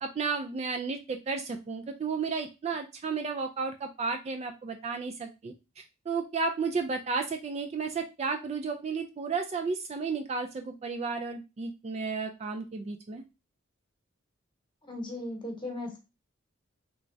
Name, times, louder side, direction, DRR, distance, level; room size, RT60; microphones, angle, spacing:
voice 1, 0.0-13.2, right 4 dB, 30° right, 5 dB, 0.3 m, -33 dB
voice 2, 14.8-16.0, left 1 dB, 25° left, 1 dB, 1.1 m, -37 dB
3.3 x 3.1 x 2.6 m, 0.27 s
head